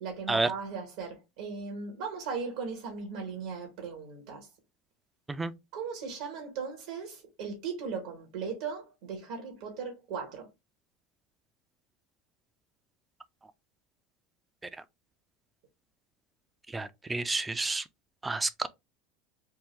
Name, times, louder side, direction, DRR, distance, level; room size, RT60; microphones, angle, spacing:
voice 1, 0.0-4.5 5.7-10.5, right 5 dB, 75° right, 1.1 m, -38 dB
voice 2, 16.7-17.8 18.2-18.7, right 3 dB, 15° right, 0.4 m, -30 dB
3.5 x 2.1 x 3.1 m
hypercardioid pair, 95°, 0 cm